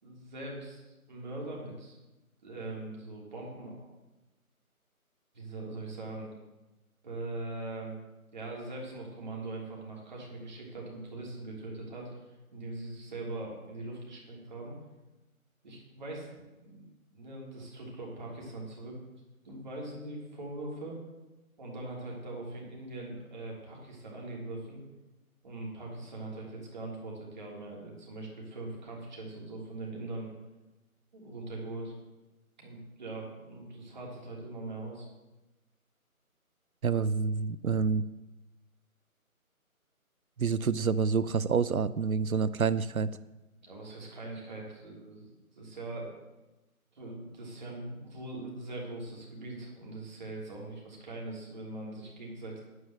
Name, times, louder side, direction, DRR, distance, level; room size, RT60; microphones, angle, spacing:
voice 1, 0.0-2.0 2.4-3.8 5.3-6.3 7.0-8.0 8.3-12.2 12.5-14.8 15.6-16.9 17.1-18.9 19.4-21.0 21.6-24.8 25.4-30.3 31.1-31.9 32.6-35.1 43.6-45.3 45.5-46.1 46.9-52.6, right 2 dB, 30° right, -3 dB, 3.3 m, -41 dB
voice 2, 36.8-38.0 40.4-43.1, right 5 dB, 75° right, 16 dB, 0.7 m, -28 dB
9.5 x 9.0 x 7.4 m, 1.1 s
figure-of-eight pair, 165°, 43 cm